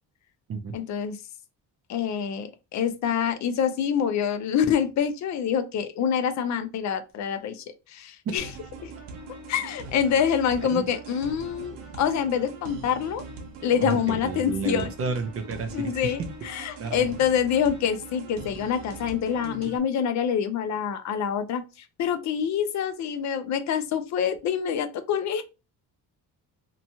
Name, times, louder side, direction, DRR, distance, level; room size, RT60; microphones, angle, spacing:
voice 1, 0.7-1.2 1.9-8.5 8.8-8.9 9.5-13.2 13.6-14.9 15.7-21.6 22.0-25.4, left 8 dB, 50° left, 0.4 m, -26 dB
sound 1, 8.4-19.8, right 3 dB, 80° right, 0.8 m, -41 dB
voice 2, 13.8-16.3 16.8-17.0, right 5 dB, 40° right, 0.4 m, -31 dB
2.9 x 2.2 x 2.6 m
cardioid pair, 170°, 39 cm